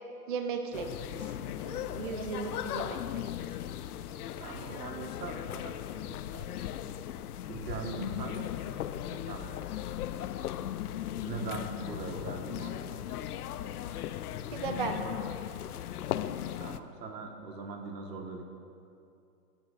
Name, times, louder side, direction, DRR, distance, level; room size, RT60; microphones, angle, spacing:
voice 1, 0.3-3.2 11.9-12.0 14.5-15.2, right 5 dB, 35° right, 6 dB, 0.4 m, -37 dB
sound 1, 0.7-16.8, left 11 dB, 65° left, 0.5 m, -37 dB
voice 2, 4.3-6.7 7.4-9.6 11.2-13.4 13.9-14.0 14.4-14.5 16.6-18.4, right 4 dB, 85° right, 3 dB, 1.6 m, -42 dB
17.0 x 10.5 x 2.5 m, 2.6 s
hypercardioid pair, 150°, 48 cm